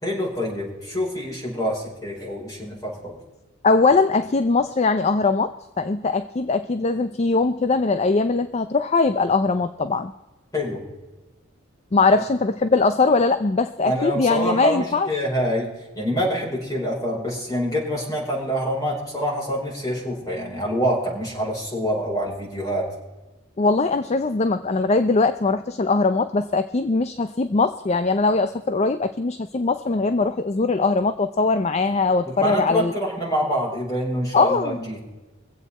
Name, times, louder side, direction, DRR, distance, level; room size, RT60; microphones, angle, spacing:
voice 1, 0.0-3.2 10.5-10.8 13.8-22.9 32.2-35.0, equal, 20° left, -5 dB, 4.9 m, -26 dB
voice 2, 3.6-10.1 11.9-15.2 23.6-32.9 34.3-34.8, left 3 dB, 35° left, 10 dB, 0.4 m, -21 dB
24.0 x 8.1 x 4.2 m, 1.1 s
head